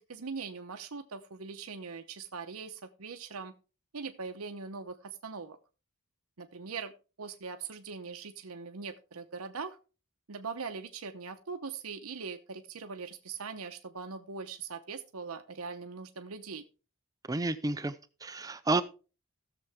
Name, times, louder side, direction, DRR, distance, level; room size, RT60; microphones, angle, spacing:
voice 1, 0.0-3.5 3.9-5.6 6.4-6.9 7.2-9.8 10.3-16.6, right 5 dB, 75° right, 0.8 m, -41 dB
voice 2, 17.3-18.0 18.2-18.8, right 2 dB, 15° right, 0.4 m, -30 dB
16.0 x 6.9 x 3.5 m
head